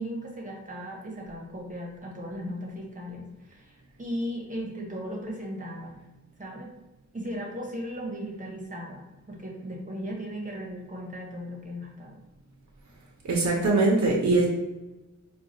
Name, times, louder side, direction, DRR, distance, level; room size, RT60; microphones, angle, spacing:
voice 1, 0.0-6.0 6.4-6.7 7.1-12.2, equal, 25° right, -2 dB, 1.0 m, -37 dB
voice 2, 13.2-14.4, right 2 dB, 65° right, -2 dB, 0.7 m, -22 dB
4.6 x 2.3 x 2.6 m, 1.1 s
wide cardioid pair, 105°, 30 cm